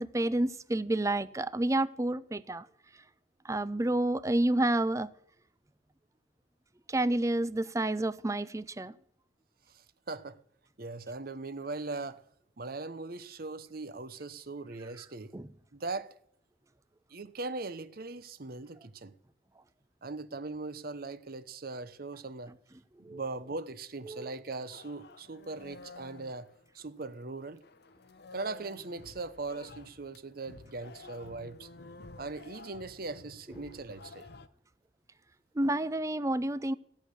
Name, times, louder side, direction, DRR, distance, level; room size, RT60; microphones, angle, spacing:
voice 1, 0.0-2.7 3.4-5.1 6.9-8.9 15.3-15.5 23.0-23.2 24.1-24.3 35.6-36.7, right 1 dB, 15° right, 0.5 m, -29 dB
voice 2, 9.7-10.4 10.8-12.2 12.6-15.3 15.7-16.1 17.1-19.1 20.0-22.5 23.1-26.5 26.7-27.6 28.3-31.7 32.2-34.3, right 3 dB, 50° right, 0.8 m, -40 dB
sound 1, 24.7-27.3 27.6-34.5, left 3 dB, 55° left, 0.8 m, -51 dB
16.5 x 6.3 x 9.9 m
head